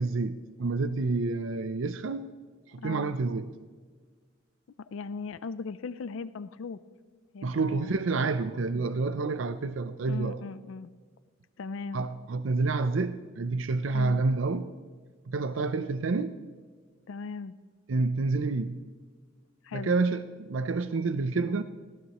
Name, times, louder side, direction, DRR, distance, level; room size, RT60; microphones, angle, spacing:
voice 1, 0.0-2.3 2.7-3.5 7.4-10.4 11.9-14.7 15.3-16.4 17.9-18.8 19.7-21.6, right 3 dB, 80° right, 0.5 m, -28 dB
voice 2, 2.8-3.2 4.9-6.8 7.3-7.9 10.1-10.9 11.6-12.0 13.9-14.2 17.1-17.5 19.6-19.9, left 4 dB, 85° left, 0.4 m, -38 dB
19.0 x 14.0 x 3.0 m
head